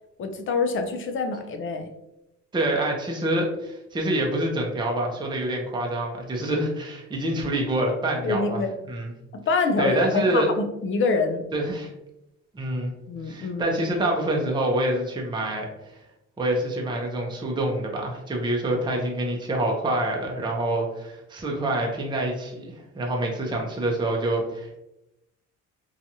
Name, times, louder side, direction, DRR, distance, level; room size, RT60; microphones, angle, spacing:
voice 1, 0.2-1.9 8.2-8.7 9.3-11.5 13.1-13.8, left 4 dB, 45° left, 6 dB, 0.5 m, -26 dB
voice 2, 2.5-8.6 8.9-9.1 9.8-10.5 11.5-11.9 12.5-12.9 13.3-15.7 16.4-24.8, right 1 dB, 15° right, 0 dB, 0.5 m, -26 dB
2.8 x 2.3 x 2.6 m, 0.89 s
cardioid pair, 90°, 30 cm